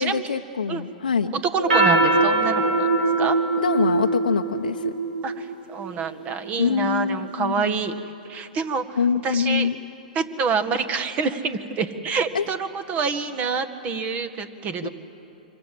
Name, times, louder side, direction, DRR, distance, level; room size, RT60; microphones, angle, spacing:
voice 1, 0.0-1.3 3.6-4.9 6.6-7.7 9.0-9.8 12.3-12.4 14.8-14.9, left 6 dB, 90° left, 3 dB, 0.9 m, -24 dB
voice 2, 1.3-2.9 3.2-3.4 5.2-7.9 8.2-9.0 9.2-9.7 10.1-14.9, right 5 dB, 30° right, 10 dB, 1.7 m, -27 dB
sound 1, 1.6-6.3, right 2 dB, 80° right, 5.0 m, -22 dB
26.0 x 25.5 x 7.7 m, 2.8 s
hypercardioid pair, 120°, 5 cm